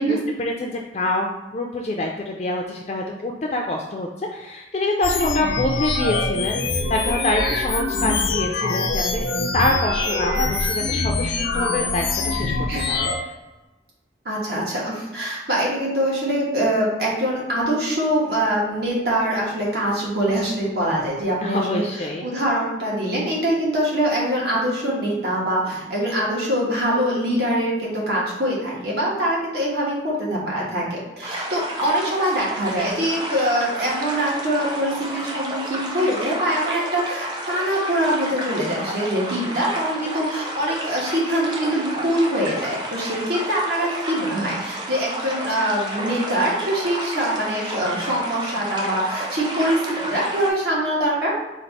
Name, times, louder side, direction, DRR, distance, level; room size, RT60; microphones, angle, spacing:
voice 1, 0.0-9.3 9.5-12.5 12.9-13.3 21.4-22.3, left 2 dB, 35° left, 0 dB, 0.3 m, -25 dB
sound 1, 5.0-13.2, left 3 dB, 85° left, 0.6 m, -24 dB
voice 2, 12.4-12.9 14.2-21.8 22.2-51.3, right 1 dB, 65° right, -4 dB, 1.4 m, -23 dB
sound 2, 31.2-50.5, right 1 dB, 25° right, 0.6 m, -31 dB
4.4 x 2.4 x 4.0 m, 1.1 s
head